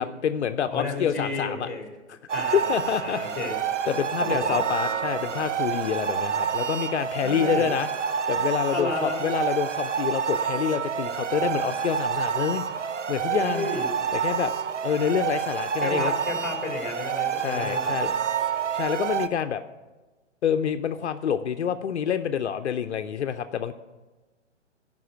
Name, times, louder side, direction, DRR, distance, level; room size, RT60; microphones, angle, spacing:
voice 1, 0.0-1.7 2.1-2.2 2.5-3.4 3.9-7.9 8.3-12.6 13.1-13.7 14.1-14.5 14.8-16.1 17.4-18.1 18.4-18.5 18.7-19.6 20.4-23.7, left 8 dB, 65° left, 9 dB, 0.7 m, -27 dB
voice 2, 0.7-1.8 2.3-3.6 4.2-4.6 7.2-7.7 8.7-9.3 13.3-13.9 15.8-18.1, left 2 dB, ahead, 1 dB, 2.4 m, -32 dB
sound 1, 2.3-19.3, right 8 dB, 80° right, 0.8 m, -28 dB
14.0 x 5.5 x 9.3 m, 1.2 s
hypercardioid pair, 135°, 36 cm